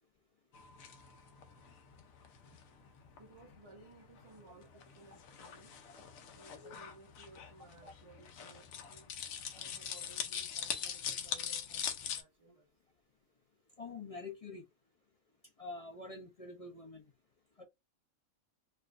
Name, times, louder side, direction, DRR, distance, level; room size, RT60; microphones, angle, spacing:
sound 1, 0.5-12.2, left 8 dB, 90° left, 1.1 m, -43 dB
voice 1, 3.2-5.7 6.3-9.1 9.5-12.7, right 3 dB, 35° right, 0.5 m, -59 dB
voice 2, 13.8-14.6 15.6-17.0 17.6-17.7, left 3 dB, 50° left, 0.4 m, -46 dB
4.3 x 2.5 x 2.4 m
omnidirectional pair, 1.4 m